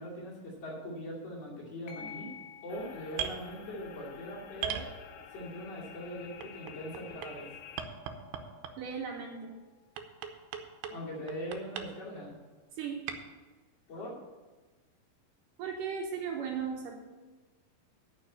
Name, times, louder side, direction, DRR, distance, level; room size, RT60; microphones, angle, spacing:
voice 1, 0.0-2.3 2.6-4.8 5.3-7.5 10.9-12.3 13.9-14.1, equal, 45° left, -6 dB, 3.6 m, -41 dB
sound 1, 1.9-10.9, left 8 dB, 65° left, 2.8 m, -54 dB
sound 2, 2.7-7.9, left 8 dB, 85° left, 2.8 m, -51 dB
sound 3, 3.1-3.4 4.6-5.4 6.4-7.3 7.8-8.9 10.0-11.0 11.3-11.9 13.1-13.2, right 8 dB, 90° right, 2.8 m, -37 dB
voice 2, 8.8-9.6 12.7-13.1 15.6-17.0, right 6 dB, 70° right, 1 dB, 2.4 m, -36 dB
10.0 x 6.0 x 8.2 m, 1.3 s
omnidirectional pair, 4.4 m